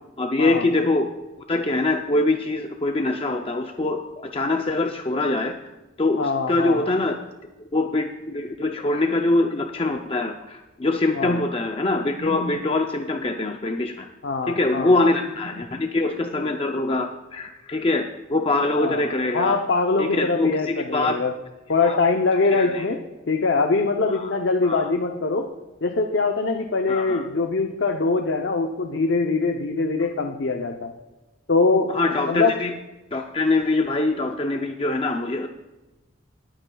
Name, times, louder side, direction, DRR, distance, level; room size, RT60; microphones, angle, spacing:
voice 1, 0.2-1.1 1.5-5.5 6.0-7.2 7.7-14.1 14.5-19.6 20.0-21.2 21.8-22.0 22.5-22.8 24.1-24.3 24.6-24.9 26.9-27.2 31.9-32.7 33.1-35.5, left 2 dB, 30° left, 4 dB, 0.5 m, -23 dB
voice 2, 6.2-6.9 11.2-11.4 14.2-14.9 18.8-21.3 21.7-23.0 23.3-25.5 25.8-30.9 31.5-31.9 32.3-32.6, left 3 dB, 65° left, 3 dB, 0.7 m, -23 dB
19.0 x 8.9 x 2.3 m, 1.1 s
head